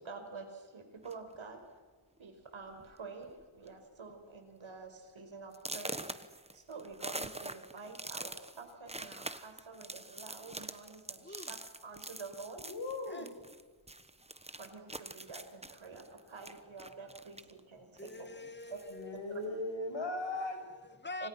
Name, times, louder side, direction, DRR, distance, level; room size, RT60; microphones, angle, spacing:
voice 1, 0.0-1.8 2.2-6.1 6.5-11.6 11.8-12.6 14.6-18.3 18.7-18.8 19.3-19.4 21.2-21.3, right 4 dB, 70° right, 5 dB, 5.4 m, -48 dB
sound 1, 1.0-1.4 2.2-2.3 2.7-2.9 3.2-3.7 4.1-4.2 4.7-4.8 5.5-13.6 13.9-17.6 18.0-19.0, right 2 dB, 15° right, 1.2 m, -45 dB
voice 2, 11.1-11.5 13.1-13.4 17.9-19.4 20.2-21.3, left 3 dB, 20° left, 10 dB, 2.0 m, -47 dB
voice 3, 12.6-13.3 18.9-20.6, left 2 dB, 65° left, 5 dB, 6.2 m, -38 dB
28.5 x 27.0 x 5.9 m, 1.4 s
wide cardioid pair, 105°, 49 cm